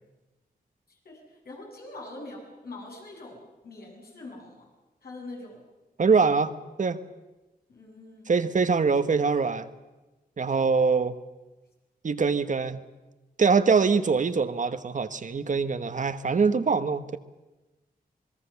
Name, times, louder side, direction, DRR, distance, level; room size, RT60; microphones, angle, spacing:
voice 1, 0.9-4.7 5.0-5.7 7.7-8.3, left 2 dB, 75° left, -1 dB, 7.4 m, -43 dB
voice 2, 6.0-6.5 6.8-7.0 8.3-9.7 10.4-11.2 12.0-12.8 13.4-17.2, right 5 dB, 55° right, 11 dB, 1.2 m, -23 dB
26.0 x 21.0 x 7.1 m, 1.1 s
wide cardioid pair, 90°, 16 cm